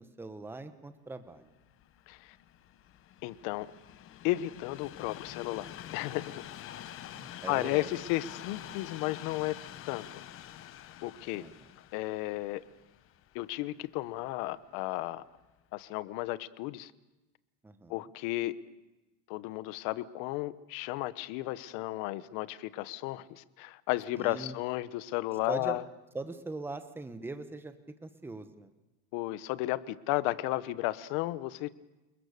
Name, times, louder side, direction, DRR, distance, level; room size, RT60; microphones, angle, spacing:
voice 1, 0.0-1.5 7.1-7.9 11.3-11.7 17.6-18.1 24.1-24.5 25.5-25.8 26.1-27.7 28.0-28.7, right 3 dB, 5° right, 9 dB, 1.2 m, -41 dB
Train, 1.5-14.7 15.4-15.5, left 11 dB, 35° left, 1.0 m, -47 dB
voice 2, 3.2-3.7 4.2-6.5 7.5-9.6 9.8-10.2 11.0-11.4 11.9-12.6 13.3-15.2 15.7-16.9 17.9-18.5 19.3-25.8 29.1-31.7, left 17 dB, 55° left, 16 dB, 1.1 m, -34 dB
28.0 x 21.5 x 6.7 m, 1.1 s
supercardioid pair, 155°, 39 cm